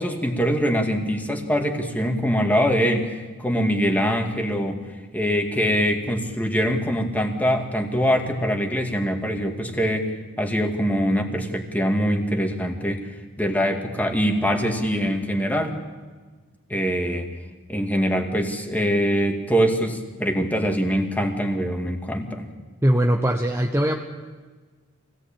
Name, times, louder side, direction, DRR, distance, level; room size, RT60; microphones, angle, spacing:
voice 1, 0.0-4.8 5.1-13.0 13.4-15.8 16.7-17.3 17.7-22.5, equal, 10° left, 3 dB, 2.3 m, -23 dB
voice 2, 22.8-23.9, equal, 10° right, 2 dB, 1.0 m, -20 dB
24.5 x 17.5 x 8.7 m, 1.4 s
head